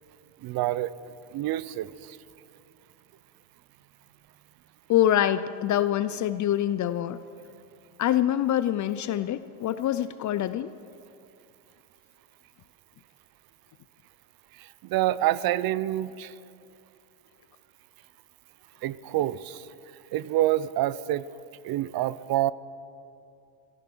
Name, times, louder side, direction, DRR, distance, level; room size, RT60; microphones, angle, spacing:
voice 1, 0.4-0.9 1.3-1.9 14.9-16.3 18.8-19.6 20.1-21.3 21.6-22.5, right 14 dB, 50° right, 19 dB, 0.6 m, -27 dB
voice 2, 4.9-7.2 8.0-10.7, left 11 dB, 40° left, 14 dB, 0.5 m, -25 dB
15.0 x 14.0 x 6.1 m, 2.5 s
supercardioid pair, 105°, 47 cm